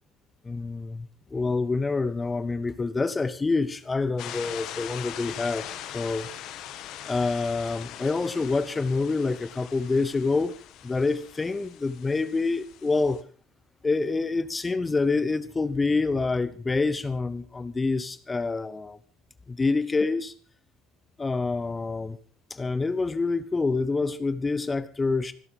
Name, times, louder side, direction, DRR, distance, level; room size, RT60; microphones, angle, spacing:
voice 1, 0.4-5.7 5.9-6.3 7.1-10.6 10.8-13.2 13.8-19.0 19.5-20.3 21.2-22.2 22.5-25.3, left 3 dB, 20° left, 1.0 m, -27 dB
sound 1, 4.2-13.2, left 11 dB, 55° left, 1.9 m, -41 dB
26.0 x 12.5 x 3.8 m
figure-of-eight pair, 65°, 0 cm